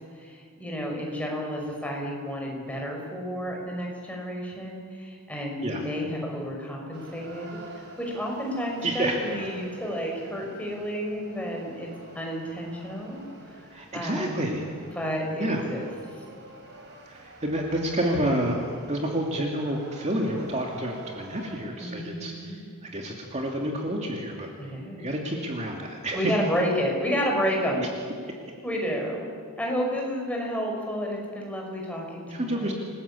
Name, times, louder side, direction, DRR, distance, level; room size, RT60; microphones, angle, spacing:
voice 1, 0.2-7.6 8.0-11.9 12.1-13.2 13.5-13.6 13.9-14.6 15.0-15.8 21.8-22.6 24.6-25.0 26.1-27.8 28.6-29.2 29.6-32.7, equal, 5° left, 0 dB, 5.7 m, -31 dB
sound 1, 6.9-21.6, right 2 dB, 50° right, 5.8 m, -48 dB
voice 2, 8.8-9.5 13.7-14.6 15.4-15.6 17.1-22.6 22.9-24.5 25.0-26.3 32.3-32.7, right 1 dB, 30° right, 0 dB, 2.7 m, -29 dB
28.5 x 20.0 x 8.6 m, 2.3 s
head